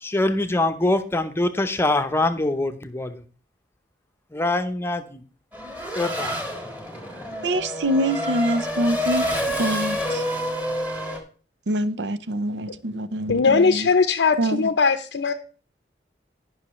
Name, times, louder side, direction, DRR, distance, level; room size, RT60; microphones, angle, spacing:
voice 1, 0.0-3.2 4.3-5.2 6.0-6.4, left 2 dB, 15° left, 8 dB, 0.7 m, -24 dB
Race car auto racing / Accelerating revving vroom, 5.5-11.2, equal, 10° right, 1.8 m, -28 dB
voice 2, 7.4-9.3 9.6-10.2 11.7-13.9 14.4-14.7, right 1 dB, 85° right, 14 dB, 0.6 m, -25 dB
voice 3, 13.3-15.3, left 4 dB, 90° left, 7 dB, 0.6 m, -19 dB
16.0 x 5.7 x 3.1 m, 0.38 s
head